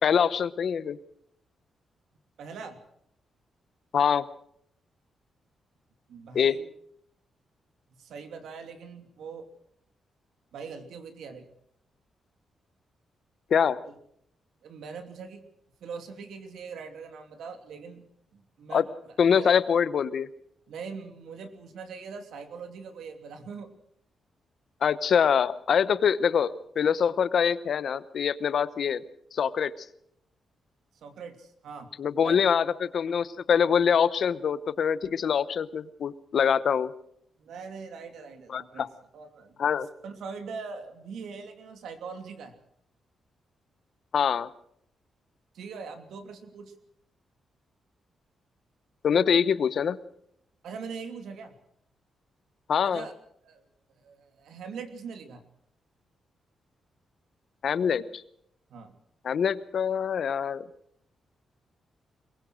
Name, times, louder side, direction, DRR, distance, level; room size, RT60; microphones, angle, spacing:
voice 1, 0.0-1.0 3.9-4.3 6.3-6.6 13.5-13.8 18.7-18.8 19.2-20.3 24.8-29.0 29.3-29.7 32.0-36.9 38.5-38.9 39.6-39.9 44.1-44.5 49.0-50.0 52.7-53.0 57.6-58.2 59.2-60.6, left 7 dB, 55° left, 16 dB, 0.8 m, -24 dB
voice 2, 2.4-2.8 6.1-6.6 8.0-9.5 10.5-11.5 13.8-13.9 14.6-15.4 15.8-18.1 18.3-19.5 20.7-23.7 31.0-31.9 32.2-32.4 37.4-38.9 39.1-39.7 40.0-42.5 45.5-46.7 50.6-51.5 52.8-53.1 53.4-53.6 54.0-55.4 58.7-58.9, right 5 dB, 85° right, 7 dB, 2.8 m, -41 dB
23.0 x 20.5 x 6.4 m, 0.71 s
wide cardioid pair, 140°, 0 cm